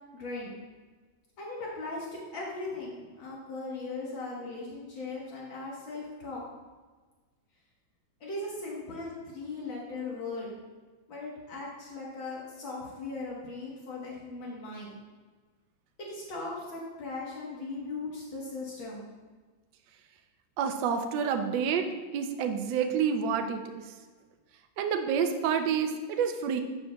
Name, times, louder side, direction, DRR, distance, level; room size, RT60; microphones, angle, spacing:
voice 1, 0.1-0.5 1.4-6.4 8.2-10.5 11.1-14.9 16.0-19.1, left 3 dB, 75° left, -4 dB, 2.1 m, -38 dB
voice 2, 20.6-21.9 22.1-23.8 24.8-26.6, right 7 dB, 75° right, 5 dB, 1.2 m, -28 dB
11.5 x 7.5 x 2.3 m, 1.4 s
omnidirectional pair, 2.2 m